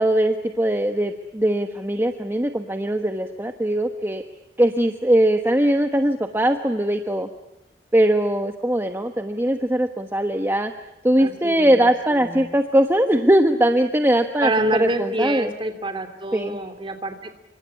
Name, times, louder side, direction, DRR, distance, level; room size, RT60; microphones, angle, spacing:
voice 1, 0.0-4.2 4.6-7.3 7.9-10.7 11.0-14.5 14.8-15.5 16.3-16.6, right 1 dB, 15° right, 6 dB, 1.3 m, -20 dB
voice 2, 11.2-12.5 14.4-17.4, right 1 dB, 30° right, 8 dB, 3.1 m, -27 dB
27.5 x 25.0 x 8.5 m, 0.86 s
head